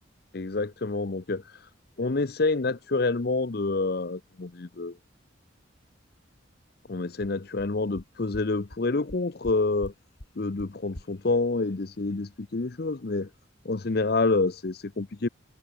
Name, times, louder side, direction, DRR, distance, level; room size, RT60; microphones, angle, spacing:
voice 1, 0.3-1.7 2.0-4.9 6.9-9.9 10.4-13.3 13.6-15.3, left 3 dB, 50° left, 0.7 m, -28 dB
sound 1, 6.8-6.9 7.2-7.3 7.6-7.7 8.0-8.1 8.3-8.4 8.7-8.8 9.1-9.5 9.8-9.9 10.2-10.3 10.6-10.7 10.9-11.0, left 1 dB, 65° left, 2.4 m, -41 dB
head